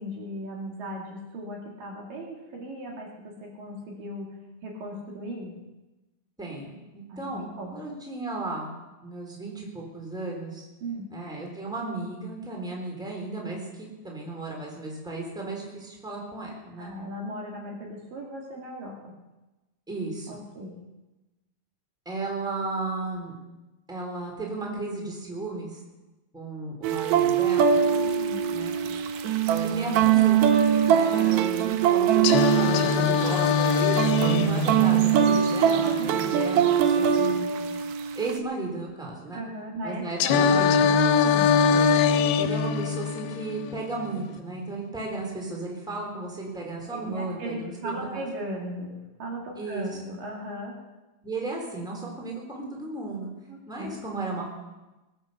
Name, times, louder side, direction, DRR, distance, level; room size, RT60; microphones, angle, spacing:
voice 1, 0.0-4.4 4.6-5.6 7.1-7.8 10.8-11.1 16.8-19.1 20.3-20.7 27.9-28.4 36.0-36.3 39.3-41.0 41.2-41.6 46.9-50.7 53.5-54.0, equal, 60° right, -1 dB, 3.7 m, -37 dB
voice 2, 6.4-8.7 9.0-10.6 11.1-16.9 19.9-20.3 22.0-23.3 23.9-25.8 26.3-27.8 28.5-28.7 29.6-30.4 30.8-37.5 38.1-39.4 39.8-40.9 41.7-41.9 42.4-48.2 49.6-49.9 51.2-53.3 53.7-54.5, right 2 dB, ahead, -1 dB, 3.3 m, -34 dB
sound 1, 26.8-38.4, right 9 dB, 90° right, 1.6 m, -22 dB
Singing, 32.2-36.2 40.2-44.2, left 6 dB, 85° left, 2.7 m, -23 dB
21.0 x 9.8 x 6.8 m, 1.1 s
omnidirectional pair, 4.4 m